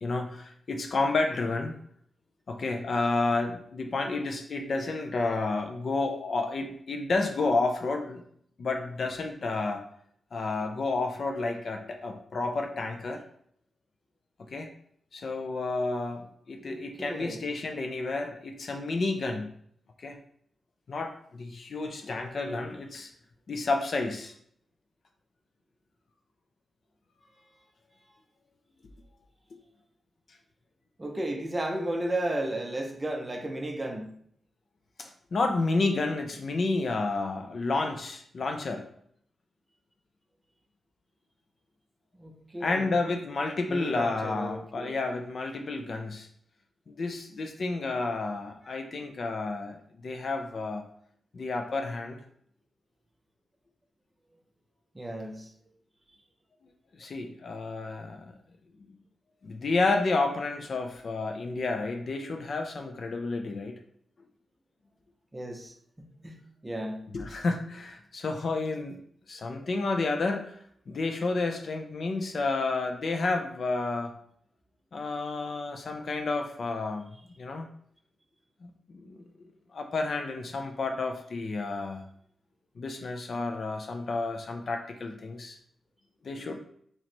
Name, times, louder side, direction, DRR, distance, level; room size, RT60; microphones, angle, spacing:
voice 1, 0.0-1.7 2.5-8.2 8.6-9.8 10.3-13.2 14.5-14.7 15.1-19.5 20.0-20.2 20.9-23.1 23.5-24.3 35.0-38.8 42.6-46.3 46.9-50.8 51.3-52.2 57.0-58.3 59.4-63.8 67.1-69.0 69.3-70.6 70.9-74.1 74.9-77.7 78.6-79.2 79.7-82.0 82.8-85.6 86.2-86.6, left 3 dB, 45° left, 5 dB, 0.4 m, -30 dB
voice 2, 16.7-17.4 31.0-34.1 42.1-42.9 43.7-44.9 48.6-48.8 54.9-55.5 65.3-67.0, right 1 dB, 15° right, 2 dB, 0.5 m, -34 dB
3.1 x 2.9 x 4.3 m, 0.65 s
wide cardioid pair, 175°, 0 cm